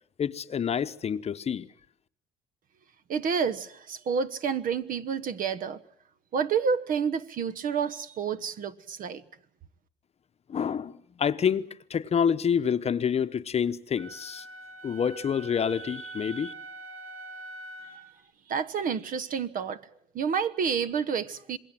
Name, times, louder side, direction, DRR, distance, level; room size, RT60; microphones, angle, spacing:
voice 1, 0.2-1.7 10.5-14.5 14.8-16.5, left 7 dB, 40° left, 0.9 m, -28 dB
voice 2, 3.1-5.8 6.3-9.2 18.5-19.8 20.1-21.6, right 6 dB, 55° right, 1.3 m, -29 dB
Wind instrument woodwind instrument, 14.0-18.1, right 3 dB, 90° right, 4.1 m, -43 dB
27.0 x 21.5 x 7.6 m
cardioid pair, 110°, 17 cm